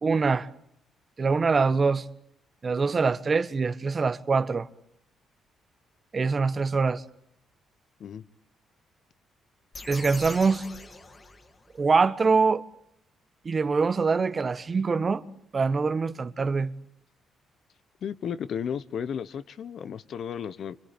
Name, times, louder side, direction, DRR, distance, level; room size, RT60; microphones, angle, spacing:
voice 1, 0.0-0.5 1.2-2.0 2.6-4.7 6.1-7.0 9.9-10.6 11.7-12.6 13.4-15.2 15.5-16.7, right 4 dB, 35° right, 1.3 m, -24 dB
sound 1, 9.7-11.9, left 3 dB, 30° left, 2.7 m, -42 dB
voice 2, 18.0-20.8, left 8 dB, 60° left, 1.0 m, -34 dB
27.0 x 25.5 x 8.7 m
cardioid pair, 90°, 0 cm